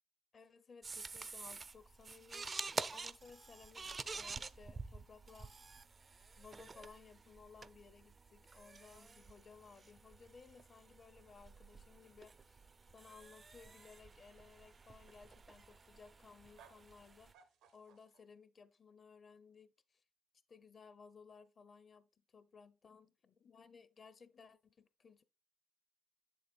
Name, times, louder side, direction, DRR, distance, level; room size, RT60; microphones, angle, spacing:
voice 1, 0.3-2.5 2.9-5.5 6.4-12.6 12.9-17.3 17.7-20.0 20.5-25.2, left 5 dB, 45° left, 0.6 m, -59 dB
sound 1, 0.8-17.3, right 4 dB, 35° right, 0.4 m, -49 dB
sound 2, 12.7-18.2, right 6 dB, 85° right, 0.8 m, -69 dB
7.5 x 7.0 x 2.3 m
cardioid pair, 90°, 0 cm